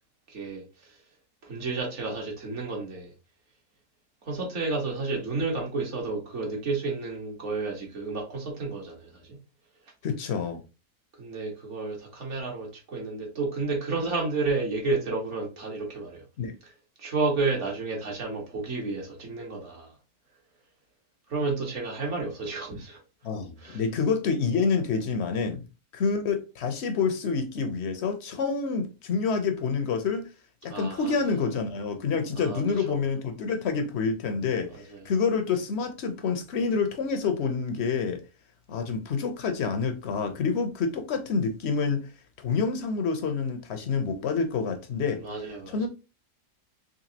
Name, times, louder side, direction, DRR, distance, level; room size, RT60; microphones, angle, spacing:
voice 1, 0.3-0.9 1.4-3.1 4.2-9.4 11.2-16.2 16.6-16.7 17.0-19.9 21.3-23.0 23.6-23.8 30.7-31.2 32.3-32.6 32.9-33.0 34.7-35.0 45.2-45.8, right 3 dB, 55° right, 1.5 m, -31 dB
voice 2, 10.0-10.6 16.4-16.5 23.2-25.6 25.9-30.3 30.6-34.7 35.0-38.2 38.7-42.0 42.4-45.2 45.7-45.9, left 5 dB, 55° left, 0.8 m, -27 dB
3.9 x 3.1 x 2.8 m
omnidirectional pair, 1.5 m